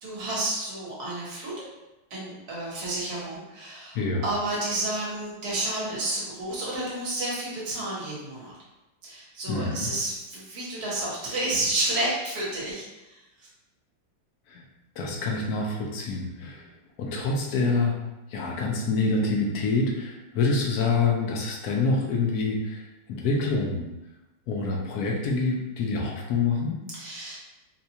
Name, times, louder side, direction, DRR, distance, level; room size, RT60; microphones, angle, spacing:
voice 1, 0.0-1.6 2.1-8.5 9.0-13.5 26.9-27.4, right 1 dB, 60° right, -5 dB, 1.5 m, -31 dB
voice 2, 9.5-9.9 14.5-14.6 15.0-16.7 17.0-18.0 18.3-23.9 24.5-26.8, left 3 dB, 75° left, -1 dB, 0.9 m, -26 dB
4.1 x 2.3 x 2.7 m, 1.0 s
omnidirectional pair, 2.0 m